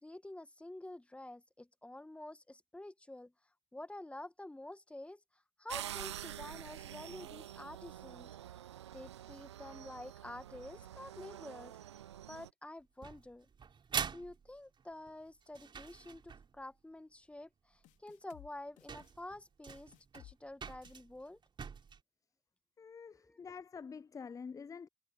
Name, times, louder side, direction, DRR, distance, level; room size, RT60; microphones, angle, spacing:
voice 1, 0.0-3.3 3.7-5.2 5.6-8.6 8.9-11.8 12.3-13.5 14.1-21.4 23.1-23.4, left 1 dB, 10° left, 1.8 m, -49 dB
sound 1, 5.7-12.5, right 11 dB, 80° right, 0.4 m, -47 dB
sound 2, 13.0-16.6 18.0-18.1 18.6-18.7 18.9-22.0, right 6 dB, 35° right, 3.7 m, -44 dB
sound 3, 17.8-18.5 18.8-19.1 19.7-20.3 20.6-21.0, left 16 dB, 60° left, 3.1 m, -58 dB
voice 2, 22.8-24.9, left 6 dB, 25° left, 0.6 m, -47 dB
figure-of-eight pair, 55°, 14 cm